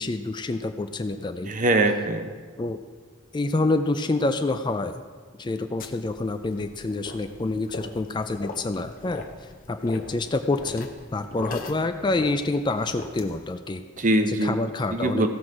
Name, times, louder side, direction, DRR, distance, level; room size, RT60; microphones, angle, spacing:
voice 1, 0.0-1.5 2.6-2.8 3.3-5.0 5.4-9.2 9.7-13.8 14.3-15.3, left 2 dB, 20° left, 8 dB, 0.4 m, -27 dB
voice 2, 1.4-2.3 14.0-14.6 14.9-15.3, right 1 dB, 40° right, 7 dB, 0.8 m, -22 dB
sound 1, 5.8-13.5, left 3 dB, 40° left, 0.9 m, -40 dB
16.0 x 6.1 x 4.8 m, 1.5 s
head